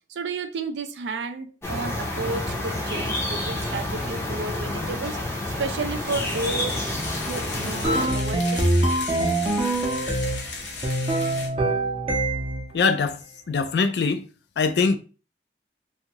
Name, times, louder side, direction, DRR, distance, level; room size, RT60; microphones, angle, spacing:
voice 1, 0.1-8.8, right 3 dB, 85° right, 0.4 m, -32 dB
sound 1, 1.6-8.1, left 1 dB, 15° left, 0.5 m, -29 dB
sound 2, 6.0-11.5, left 4 dB, 85° left, 0.8 m, -36 dB
sound 3, 7.8-10.5 10.8-12.7, right 1 dB, 30° right, 0.5 m, -24 dB
voice 2, 12.7-13.2 13.5-14.3 14.6-15.0, left 4 dB, 70° left, 0.4 m, -22 dB
2.6 x 2.4 x 2.8 m
head